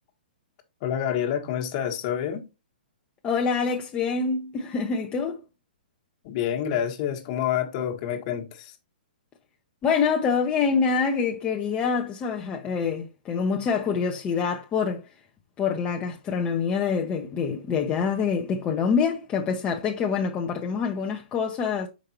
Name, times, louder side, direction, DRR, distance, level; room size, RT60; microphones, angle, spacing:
voice 1, 0.8-2.4 6.2-8.7, left 9 dB, 40° left, 1.5 m, -28 dB
voice 2, 3.2-5.4 9.8-15.1 15.6-21.9, left 5 dB, 20° left, 0.8 m, -26 dB
6.5 x 5.2 x 2.9 m
hypercardioid pair, 130°, 5 cm